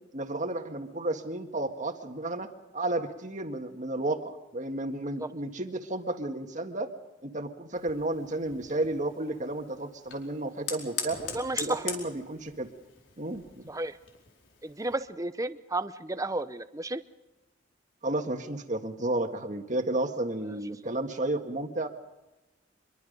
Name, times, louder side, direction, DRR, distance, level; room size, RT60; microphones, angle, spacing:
voice 1, 0.1-6.9 7.2-11.2 11.6-12.7 13.2-13.6 18.0-21.9, right 2 dB, 40° right, 5 dB, 1.7 m, -32 dB
Fire, 7.7-15.0, left 6 dB, 80° left, 4.7 m, -42 dB
voice 2, 11.3-11.8 13.7-13.9 14.6-17.0, right 2 dB, 20° right, 11 dB, 0.8 m, -32 dB
25.0 x 22.5 x 5.3 m, 1.0 s
head